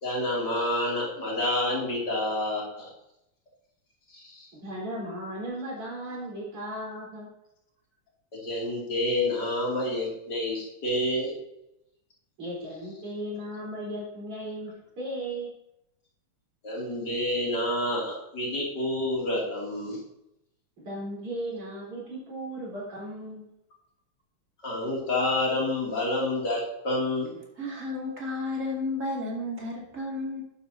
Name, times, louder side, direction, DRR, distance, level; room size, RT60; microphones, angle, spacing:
voice 1, 0.0-2.9 4.1-4.5 8.3-11.3 16.6-20.0 24.6-27.3, left 1 dB, 50° left, -4 dB, 3.3 m, -28 dB
voice 2, 4.6-7.3 12.4-15.5 20.8-23.5, right 1 dB, 85° right, -5 dB, 5.0 m, -36 dB
voice 3, 27.6-30.4, left 2 dB, 35° right, -2 dB, 2.7 m, -32 dB
11.0 x 8.4 x 2.8 m, 0.84 s
omnidirectional pair, 2.4 m